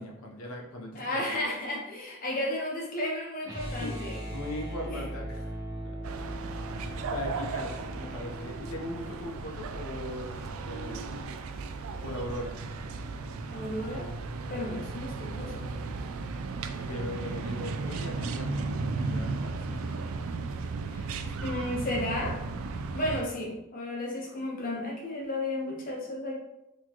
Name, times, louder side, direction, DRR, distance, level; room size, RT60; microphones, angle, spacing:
voice 1, 0.0-1.2 3.7-3.9 4.3-5.5 5.8-6.0 6.7-11.3 12.0-12.5 16.8-20.0 21.2-21.4, left 1 dB, 80° left, 2 dB, 0.7 m, -39 dB
voice 2, 0.9-4.2 4.9-5.0 13.5-14.1 14.5-15.7 20.9-21.1 21.4-22.4 22.9-26.4, left 1 dB, 40° left, -1 dB, 0.9 m, -33 dB
sound 1, 3.4-9.5, right 1 dB, 15° right, 1.2 m, -39 dB
sound 2, 6.0-23.2, right 3 dB, 75° right, 0.3 m, -35 dB
4.0 x 3.0 x 2.9 m, 0.91 s
head